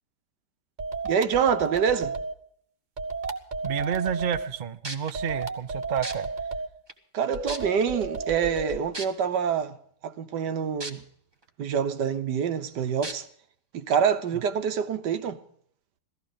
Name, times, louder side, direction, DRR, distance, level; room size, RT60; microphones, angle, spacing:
sound 1, 0.8-2.3 3.0-4.5 5.1-6.7 7.3-8.8, right 3 dB, 35° right, 0.9 m, -32 dB
voice 1, 1.0-2.2 7.1-9.8 10.0-11.0 11.6-13.2 13.7-15.4, right 7 dB, 80° right, 1.6 m, -26 dB
voice 2, 3.6-6.3 14.3-14.4, right 8 dB, 60° right, 0.5 m, -30 dB
sound 2, 4.5-4.6 4.8-5.1 6.0-6.1 6.9-7.0 7.5-7.8 8.9-9.1 10.8-10.9 11.4-11.5 13.0-13.1 13.9-14.0, right 2 dB, 15° right, 1.2 m, -34 dB
17.0 x 14.0 x 5.1 m
omnidirectional pair, 1.8 m